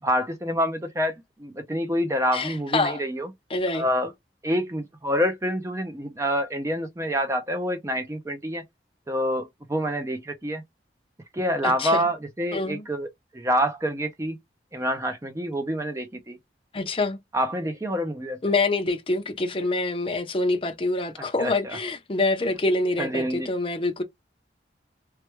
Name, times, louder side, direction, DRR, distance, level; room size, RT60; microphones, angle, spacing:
voice 1, 0.0-3.3 3.7-4.1 4.4-8.6 9.1-10.6 11.3-14.4 14.7-16.4 17.3-18.4 21.2-21.8 23.0-23.5, equal, 15° right, 0.5 m, -27 dB
voice 2, 2.3-3.0 3.5-3.9 11.6-12.1 12.5-12.8 16.7-17.2 18.4-24.0, left 2 dB, 30° left, 0.6 m, -26 dB
3.2 x 2.2 x 3.0 m
head